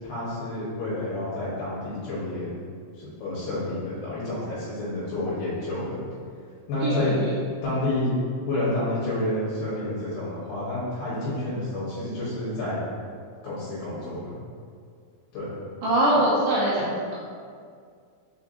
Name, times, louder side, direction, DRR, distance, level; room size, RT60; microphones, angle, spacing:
voice 1, 0.0-2.5 3.0-6.0 6.7-7.1 7.6-8.1 8.4-12.8 13.4-14.2 15.3-15.5, left 1 dB, 75° left, -9 dB, 3.0 m, -29 dB
voice 2, 6.8-7.3 15.8-16.9, right 1 dB, 85° right, -8 dB, 2.1 m, -22 dB
6.4 x 2.6 x 2.6 m, 2.2 s
omnidirectional pair, 5.0 m